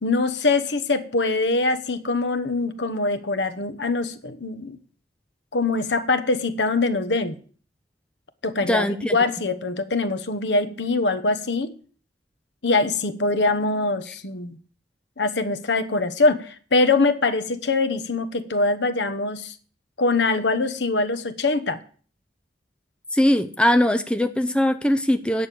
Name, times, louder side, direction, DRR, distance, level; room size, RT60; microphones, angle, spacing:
voice 1, 0.0-4.8 5.5-7.4 8.4-8.9 9.1-11.8 12.6-14.6 15.2-19.5 20.0-21.8, left 3 dB, 85° left, 12 dB, 1.0 m, -23 dB
voice 2, 8.6-9.2 23.1-25.5, left 1 dB, 5° left, 9 dB, 0.6 m, -21 dB
9.5 x 6.5 x 8.4 m, 0.43 s
head